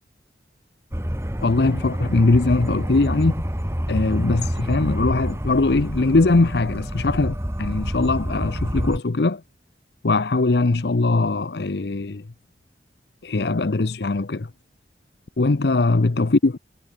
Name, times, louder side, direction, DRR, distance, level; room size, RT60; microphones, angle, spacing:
sound 1, 0.9-9.0, equal, 15° right, 2.4 m, -27 dB
voice 1, 1.4-3.4 3.9-9.4 10.0-12.2 13.2-14.5 15.4-16.6, left 3 dB, 70° left, 0.7 m, -21 dB
head